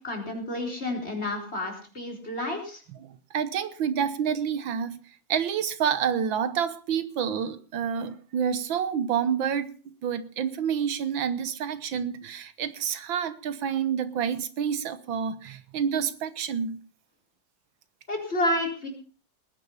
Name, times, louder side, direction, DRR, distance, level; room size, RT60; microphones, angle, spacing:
voice 1, 0.0-2.8 18.1-18.9, left 1 dB, 30° left, 1 dB, 4.5 m, -30 dB
voice 2, 3.3-5.0 5.3-9.7 10.0-16.8, right 8 dB, 80° right, 13 dB, 1.9 m, -28 dB
19.5 x 10.0 x 5.6 m, 0.39 s
omnidirectional pair, 2.1 m